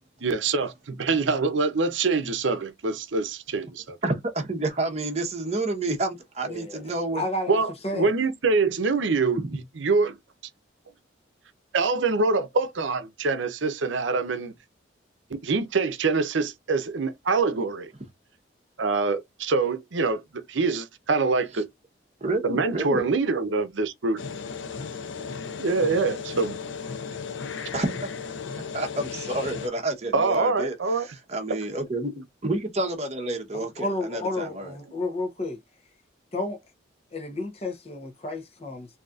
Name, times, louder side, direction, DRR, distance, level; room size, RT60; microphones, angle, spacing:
voice 1, 0.2-4.0 7.5-10.2 11.7-14.5 15.3-17.9 18.8-21.7 22.4-24.2 25.6-26.6 30.1-31.1, right 4 dB, 80° right, 0.7 m, -25 dB
voice 2, 4.0-7.2 9.4-9.5 22.2-23.1 27.7-28.1 28.7-34.7, right 2 dB, 35° right, 0.9 m, -29 dB
voice 3, 6.4-6.8 7.1-8.1 33.5-35.6 36.3-36.6 37.1-38.9, left 2 dB, 30° left, 0.8 m, -31 dB
sound 1, 24.2-29.7, left 5 dB, 80° left, 0.6 m, -35 dB
4.0 x 2.8 x 2.4 m
head